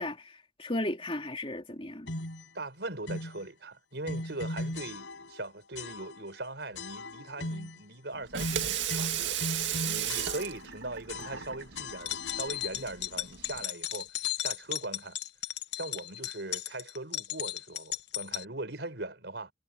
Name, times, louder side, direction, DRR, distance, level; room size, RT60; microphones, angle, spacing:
voice 1, 0.0-2.1, left 1 dB, 30° left, 3.2 m, -35 dB
sound 1, 2.1-2.5 3.1-3.4 4.0-5.4 5.7-6.4 6.7-7.8 8.4-10.8 11.1-13.0, left 1 dB, 90° left, 5.3 m, -39 dB
voice 2, 2.5-14.1 14.4-15.2 15.7-19.5, right 2 dB, 70° right, 5.1 m, -40 dB
Water tap faucet / Sink (filling or washing), 8.1-13.6, right 10 dB, 90° right, 2.0 m, -35 dB
sound 2, 11.9-18.4, left 13 dB, 65° left, 1.1 m, -35 dB
head